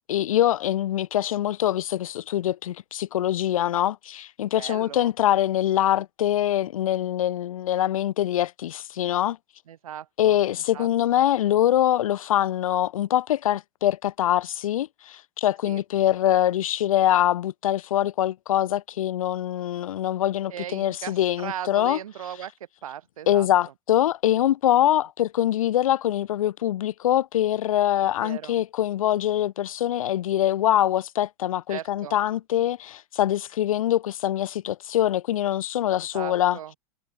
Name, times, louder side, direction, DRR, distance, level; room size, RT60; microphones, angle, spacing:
voice 1, 0.1-9.4 10.2-22.0 23.3-36.6, left 12 dB, 85° left, 1.8 m, -24 dB
voice 2, 4.6-5.1 9.7-10.4 10.7-10.9 15.7-15.8 20.5-22.5 22.8-23.5 28.2-28.6 31.7-32.2 36.1-36.7, right 10 dB, 90° right, 4.7 m, -37 dB
supercardioid pair, 120°, 17 cm